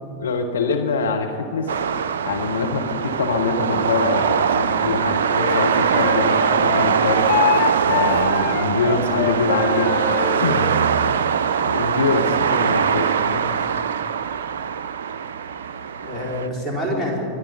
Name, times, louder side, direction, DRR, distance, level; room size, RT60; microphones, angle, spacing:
voice 1, 0.2-1.7 2.2-7.3 7.8-9.9 10.4-10.6 11.7-13.4, left 4 dB, 65° left, 3 dB, 1.1 m, -24 dB
sound 1, 1.7-16.5, right 7 dB, 65° right, 0.4 m, -22 dB
Wind instrument woodwind instrument, 5.4-10.4, left 9 dB, 40° left, 1.2 m, -25 dB
voice 2, 13.2-13.7 16.0-17.3, equal, 5° left, -5 dB, 4.3 m, -28 dB
24.0 x 10.0 x 5.2 m, 2.5 s
figure-of-eight pair, 90°, 0 cm